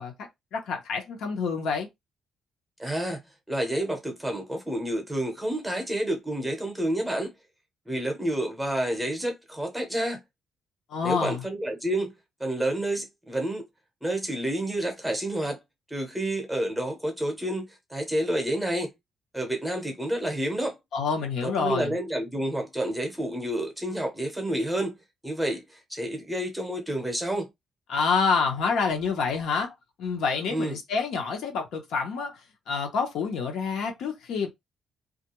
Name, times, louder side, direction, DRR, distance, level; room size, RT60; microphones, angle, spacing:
voice 1, 0.0-1.9 10.9-11.4 20.9-21.9 27.9-29.7 30.0-32.4 32.7-34.5, left 5 dB, 75° left, 0.8 m, -27 dB
voice 2, 2.8-3.2 3.5-7.3 7.9-10.2 11.0-12.1 12.4-13.6 14.0-15.6 15.9-18.9 19.3-20.8 21.4-25.0 25.2-27.5 30.5-30.8, right 1 dB, 5° right, 0.8 m, -29 dB
2.4 x 2.2 x 2.9 m
cardioid pair, 150°, 0 cm